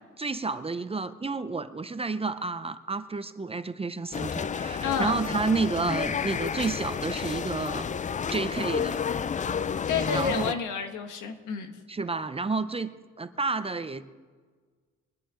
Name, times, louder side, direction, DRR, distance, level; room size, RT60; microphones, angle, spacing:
voice 1, 0.2-7.9 8.3-9.0 10.1-10.6 11.9-14.0, right 3 dB, 20° right, 11 dB, 0.7 m, -30 dB
sound 1, 4.1-10.5, left 7 dB, 25° left, 0.4 m, -31 dB
voice 2, 4.8-5.2 9.9-11.7, left 6 dB, 80° left, 6 dB, 1.7 m, -30 dB
22.5 x 11.0 x 3.8 m, 1.5 s
cardioid pair, 90°, 30 cm